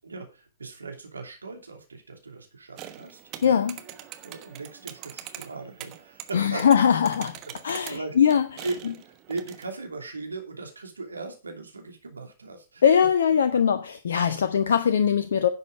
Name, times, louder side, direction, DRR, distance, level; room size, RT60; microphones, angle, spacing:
voice 1, 0.0-3.6 4.2-6.7 7.6-8.2 8.6-12.8 14.3-14.4, right 3 dB, 75° right, 2.9 m, -38 dB
sound 1, 2.8-9.8, right 12 dB, 35° right, 1.1 m, -44 dB
voice 2, 3.4-3.8 6.3-7.4 7.6-8.5 12.8-15.5, left 7 dB, 60° left, 0.8 m, -21 dB
10.5 x 7.3 x 4.8 m
figure-of-eight pair, 110°, 0 cm